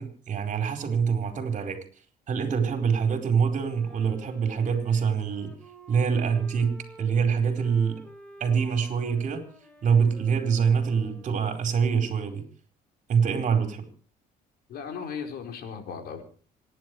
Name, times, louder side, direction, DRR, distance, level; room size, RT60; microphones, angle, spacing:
voice 1, 0.0-1.8 2.3-5.5 5.9-8.0 8.4-9.5 9.8-12.4 13.1-13.9, right 6 dB, 50° right, 5 dB, 4.7 m, -25 dB
Wind instrument woodwind instrument, 3.5-11.9, right 1 dB, 5° left, 4.2 m, -50 dB
voice 2, 14.7-16.2, left 6 dB, 65° left, 4 dB, 4.8 m, -36 dB
26.5 x 11.0 x 4.8 m, 0.41 s
cardioid pair, 110°, 17 cm